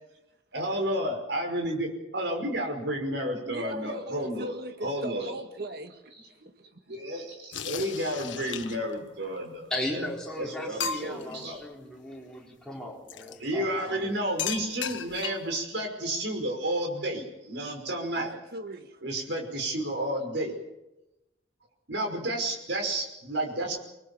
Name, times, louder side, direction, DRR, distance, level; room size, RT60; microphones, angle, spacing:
voice 1, 0.5-5.3 6.2-6.3 6.9-10.0 10.4-11.6 13.4-18.3 19.0-20.5 21.9-23.8, right 1 dB, 70° right, 5.5 m, -31 dB
voice 2, 3.5-6.4 6.7-6.8 18.1-19.0, right 2 dB, 55° right, 1.8 m, -39 dB
sound 1, 7.5-9.0 9.9-10.0 10.3-10.4 10.8-11.4 13.1-13.4 14.4-15.6, left 7 dB, 85° left, 1.3 m, -35 dB
voice 3, 9.7-14.2, left 1 dB, 5° left, 4.4 m, -37 dB
25.5 x 20.0 x 7.1 m
head